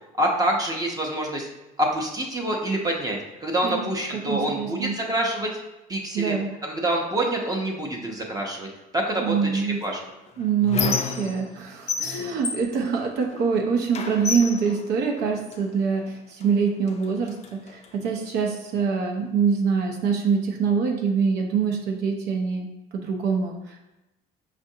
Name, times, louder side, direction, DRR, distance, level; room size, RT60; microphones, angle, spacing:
voice 1, 0.2-1.5 1.8-5.5 5.9-6.4 6.6-10.0, right 1 dB, 20° right, 0 dB, 0.6 m, -26 dB
voice 2, 4.3-4.9 6.1-6.5 9.2-9.8 10.4-22.7 22.9-23.8, right 6 dB, 80° right, 1 dB, 0.6 m, -25 dB
Squeak, 9.8-11.6 11.9-13.5 13.9-15.6 16.4-16.5 16.9-17.9, left 6 dB, 40° left, 0.4 m, -31 dB
5.3 x 2.5 x 2.7 m, 0.99 s
cardioid pair, 110°, 17 cm